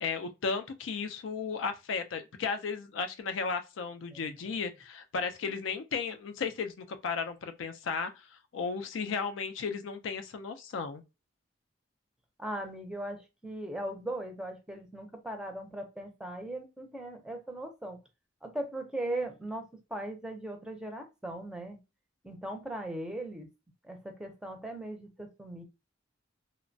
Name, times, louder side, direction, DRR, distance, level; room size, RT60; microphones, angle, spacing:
voice 1, 0.0-11.0, left 5 dB, 85° left, 0.4 m, -35 dB
voice 2, 12.4-18.0 18.4-19.7 19.9-21.8 22.2-23.5 23.8-25.6, right 1 dB, 5° right, 0.5 m, -38 dB
3.0 x 2.1 x 2.6 m
head